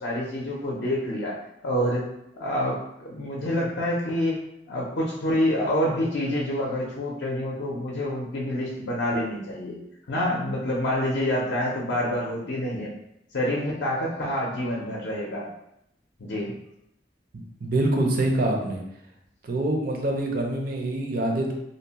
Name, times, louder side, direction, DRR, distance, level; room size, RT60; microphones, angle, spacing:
voice 1, 0.0-1.4 1.6-2.1 2.4-4.4 4.7-9.8 10.1-12.9 13.3-15.5 16.2-16.5, left 1 dB, 65° left, -4 dB, 0.5 m, -27 dB
voice 2, 17.6-18.8 19.4-21.5, right 1 dB, 50° right, 1 dB, 0.5 m, -25 dB
2.7 x 2.1 x 2.8 m, 0.80 s
head